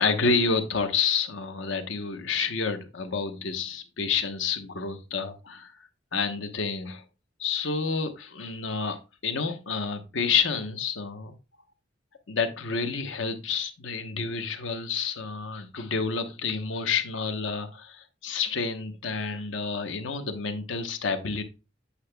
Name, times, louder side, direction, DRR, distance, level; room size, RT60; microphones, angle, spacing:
voice 1, 0.0-5.7 6.1-7.0 7.4-11.3 12.3-21.4, left 5 dB, 90° left, 0.9 m, -29 dB
8.3 x 5.9 x 2.2 m
head